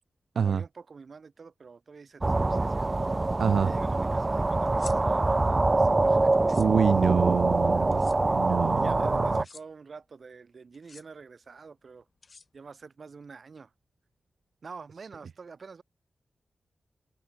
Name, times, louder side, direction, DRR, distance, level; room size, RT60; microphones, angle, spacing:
voice 1, 0.3-2.9 3.6-6.6 8.2-8.4 8.7-12.1 12.5-13.7 14.6-15.8, right 5 dB, 55° right, 7.4 m, -47 dB
sound 1, 2.2-9.4, right 2 dB, 30° right, 0.5 m, -25 dB
voice 2, 3.4-3.7 6.6-8.9, right 6 dB, 80° right, 0.6 m, -26 dB
sound 2, 4.7-5.0 6.3-6.7 7.9-8.2 9.3-9.6 10.7-11.0 12.2-12.8, left 4 dB, 45° left, 2.1 m, -47 dB
wide cardioid pair, 90°, 0 cm